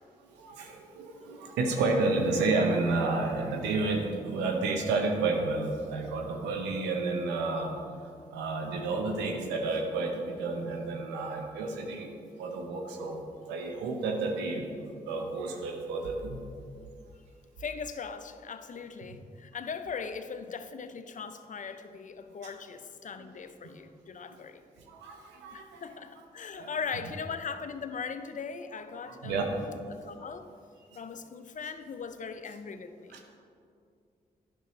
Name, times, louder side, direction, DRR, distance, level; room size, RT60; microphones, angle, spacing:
voice 1, 0.3-7.8 8.3-12.1 12.4-13.2 13.5-16.4 22.4-22.5 24.3-24.4 24.9-25.8 26.5-26.7 29.1-29.5 30.9-31.0 33.1-33.2, right 3 dB, 90° right, 3 dB, 0.7 m, -31 dB
voice 2, 17.6-24.6 25.5-30.5 30.9-33.2, left 5 dB, 45° left, 10 dB, 0.6 m, -39 dB
9.3 x 6.2 x 3.1 m, 2.4 s
supercardioid pair, 40°, 17 cm